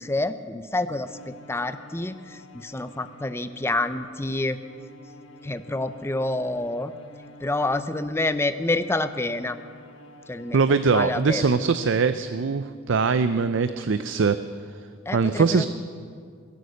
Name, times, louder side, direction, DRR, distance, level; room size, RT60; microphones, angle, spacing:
voice 1, 0.0-4.6 5.4-6.9 7.4-9.6 10.3-10.6 10.9-11.5 15.1-15.7, left 2 dB, 15° left, 11 dB, 0.5 m, -28 dB
Bowed string instrument, 1.0-12.2, left 1 dB, 70° left, 1.4 m, -49 dB
voice 2, 10.5-14.4 15.1-15.6, right 4 dB, 65° right, 11 dB, 0.5 m, -22 dB
22.0 x 9.5 x 6.8 m, 2.1 s
head